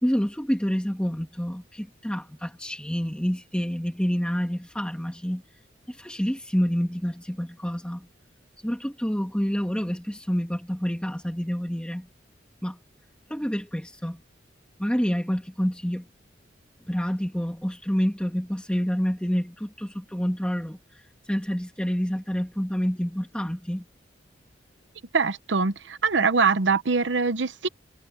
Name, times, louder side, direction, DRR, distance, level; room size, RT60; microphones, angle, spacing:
voice 1, 0.0-5.4 5.9-8.1 8.6-12.1 12.6-12.8 13.3-14.2 14.8-16.1 16.9-20.8 21.3-23.8, equal, 5° left, 2.2 m, -28 dB
voice 2, 25.1-27.7, right 4 dB, 70° right, 0.9 m, -23 dB
head